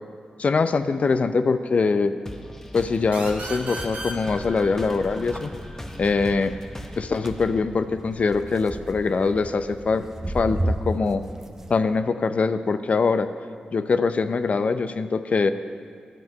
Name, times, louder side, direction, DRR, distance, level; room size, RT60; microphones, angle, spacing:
voice 1, 0.4-2.1 2.7-5.5 6.0-6.5 7.0-10.1 10.3-11.2 11.7-13.3 13.7-15.5, left 4 dB, 55° left, 10 dB, 0.5 m, -23 dB
sound 1, 2.3-7.6, left 1 dB, 15° left, 0.9 m, -39 dB
sound 2, 2.8-11.8, right 1 dB, 15° right, 0.8 m, -35 dB
sound 3, 3.1-6.5, right 2 dB, 70° right, 1.5 m, -37 dB
12.0 x 7.3 x 5.6 m, 2.1 s
cardioid pair, 70°, 3 cm